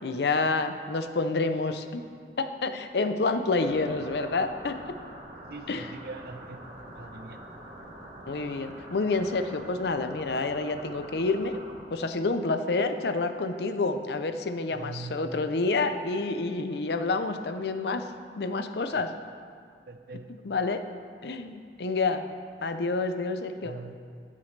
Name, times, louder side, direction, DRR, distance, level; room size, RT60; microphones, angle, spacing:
voice 1, 0.0-2.0 2.4-4.9 5.7-5.9 8.3-11.6 11.9-18.1 18.4-19.1 20.4-20.8 21.2-22.2 22.6-23.7, left 3 dB, 70° left, 8 dB, 0.6 m, -28 dB
sound 1, 3.5-11.8, right 1 dB, 40° right, 1.5 m, -45 dB
voice 2, 5.5-7.4 14.7-15.3 18.9-19.0 19.9-20.5 23.6-24.0, right 3 dB, 55° right, 7 dB, 0.6 m, -42 dB
13.5 x 7.5 x 3.3 m, 2.1 s
head